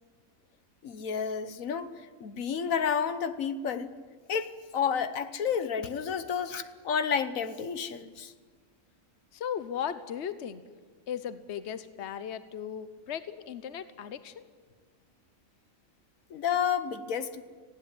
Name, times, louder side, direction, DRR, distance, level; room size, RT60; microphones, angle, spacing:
voice 1, 0.8-1.9 2.2-3.9 4.3-8.3 16.3-17.4, left 7 dB, 80° left, 11 dB, 1.4 m, -30 dB
voice 2, 9.3-10.6 11.1-14.4, left 8 dB, 60° left, 12 dB, 1.2 m, -37 dB
19.5 x 16.5 x 9.6 m, 1.5 s
omnidirectional pair, 1.4 m